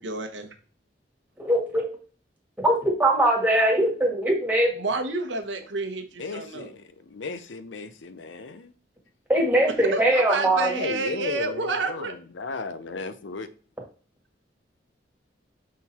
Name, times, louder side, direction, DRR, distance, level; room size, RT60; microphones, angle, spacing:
voice 1, 0.0-0.5 4.8-6.7 9.9-12.1, right 3 dB, 85° right, 1.1 m, -29 dB
voice 2, 1.4-1.8 2.6-4.7 9.3-10.7, right 1 dB, 10° right, 1.9 m, -21 dB
voice 3, 6.2-8.7 10.7-13.5, left 3 dB, 85° left, 0.6 m, -35 dB
6.3 x 3.9 x 4.2 m
head